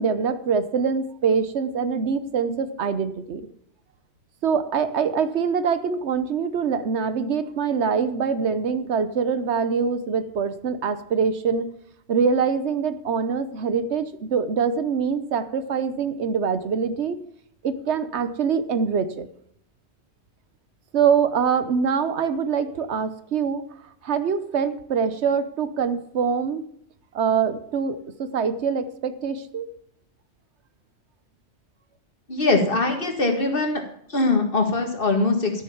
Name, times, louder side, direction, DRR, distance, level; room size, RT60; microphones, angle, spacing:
voice 1, 0.0-3.5 4.4-11.7 12.1-17.2 17.6-19.3 20.9-23.6 24.0-26.6 27.1-29.7, right 6 dB, 80° right, 12 dB, 1.2 m, -24 dB
voice 2, 32.3-33.8 34.1-35.6, left 3 dB, 55° left, 4 dB, 2.0 m, -22 dB
12.5 x 6.6 x 7.1 m, 0.68 s
omnidirectional pair, 1.1 m